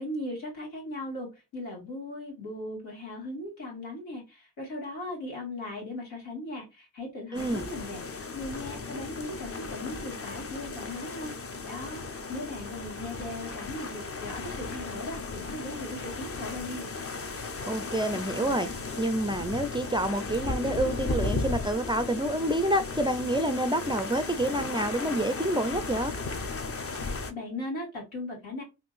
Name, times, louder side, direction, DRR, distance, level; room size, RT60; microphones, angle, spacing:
voice 1, 0.0-11.3 11.6-16.9 27.3-28.6, left 1 dB, 85° left, 1.8 m, -38 dB
sound 1, 7.3-27.3, left 3 dB, 30° left, 0.6 m, -35 dB
voice 2, 7.3-7.6 17.7-18.7 19.0-26.1, right 1 dB, 10° right, 0.4 m, -28 dB
3.6 x 2.6 x 2.4 m
supercardioid pair, 55°, 45 cm